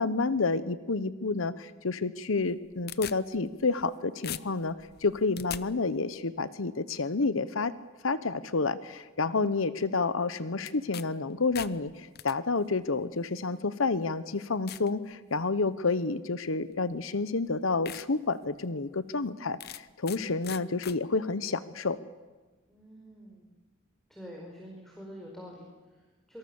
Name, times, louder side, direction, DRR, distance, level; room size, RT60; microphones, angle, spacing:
voice 1, 0.0-4.7 5.0-7.7 8.0-22.0, left 3 dB, 85° left, 14 dB, 1.0 m, -29 dB
sound 1, 2.4-3.9 4.2-5.6 10.7-11.1 11.4-12.3 13.2-13.3 13.9-14.0 14.7-14.9 15.4-15.8 16.9-17.0 17.4-17.5 17.9-18.1 18.5-18.6 19.6-20.2 20.4-21.0, left 11 dB, 50° left, 0.8 m, -41 dB
voice 2, 20.1-20.5 22.7-23.5 24.1-26.4, equal, ahead, -1 dB, 4.9 m, -47 dB
26.5 x 25.0 x 7.1 m, 1.2 s
head